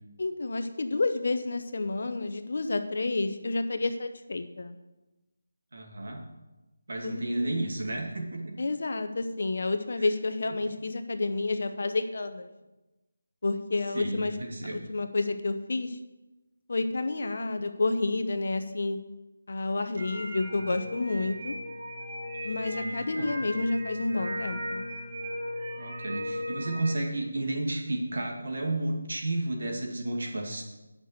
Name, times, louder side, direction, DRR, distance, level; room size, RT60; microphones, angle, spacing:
voice 1, 0.2-4.8 7.0-7.7 8.6-12.5 13.4-14.3 14.7-16.0 16.7-19.0 19.5-21.6 22.4-24.8, left 3 dB, 50° left, 8 dB, 0.8 m, -30 dB
voice 2, 5.7-6.3 6.9-8.5 10.0-10.1 13.9-14.8 22.7-23.3 25.8-30.6, right 2 dB, 55° right, 1 dB, 2.3 m, -32 dB
sound 1, 20.0-27.0, equal, 30° right, 1.3 m, -37 dB
9.1 x 6.1 x 8.1 m, 1.1 s
figure-of-eight pair, 175°, 0 cm